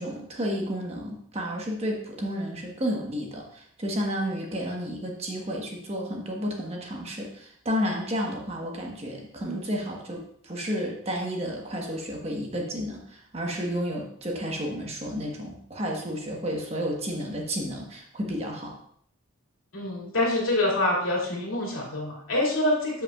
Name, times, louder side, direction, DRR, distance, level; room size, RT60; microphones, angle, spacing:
voice 1, 0.0-18.7, equal, 30° right, 0 dB, 1.2 m, -31 dB
voice 2, 19.7-23.0, left 1 dB, 70° left, -3 dB, 2.5 m, -26 dB
13.0 x 5.7 x 2.4 m, 0.64 s
head